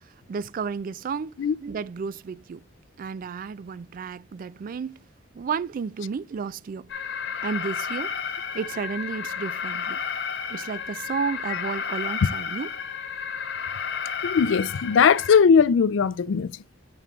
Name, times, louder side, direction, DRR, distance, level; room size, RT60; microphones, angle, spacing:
voice 1, 0.3-2.6 3.0-5.1 5.3-6.9 7.4-8.3 8.5-10.0 10.5-12.7, right 5 dB, 45° right, 0.3 m, -32 dB
Alarm, 6.9-15.4, left 7 dB, 65° left, 0.9 m, -32 dB
voice 2, 14.2-16.5, left 6 dB, 85° left, 0.4 m, -19 dB
6.0 x 5.6 x 3.5 m
head